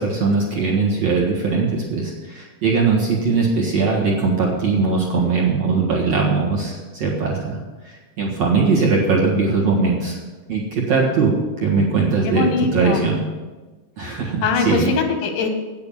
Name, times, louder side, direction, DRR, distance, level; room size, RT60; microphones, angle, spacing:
voice 1, 0.0-7.6 7.8-10.2 10.5-10.6 10.9-12.5 12.7-13.2 14.0-14.9, right 4 dB, 55° right, -3 dB, 2.0 m, -20 dB
voice 2, 12.3-13.1 14.2-15.5, left 4 dB, 90° left, 4 dB, 3.7 m, -22 dB
9.2 x 8.7 x 7.2 m, 1.3 s
omnidirectional pair, 5.0 m